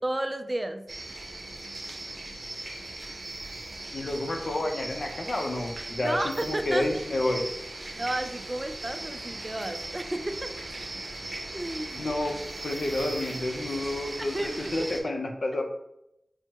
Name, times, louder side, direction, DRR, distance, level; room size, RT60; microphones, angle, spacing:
voice 1, 0.0-0.9 6.0-6.9 7.9-10.5 11.5-12.1 14.3-14.9, right 1 dB, 25° right, 8 dB, 0.3 m, -32 dB
sound 1, 0.9-15.0, right 2 dB, 60° right, 0.7 m, -38 dB
voice 2, 3.9-7.5 12.0-12.3 12.6-15.7, left 1 dB, 70° left, 3 dB, 0.6 m, -30 dB
6.0 x 2.1 x 2.8 m, 0.82 s
wide cardioid pair, 80°, 0 cm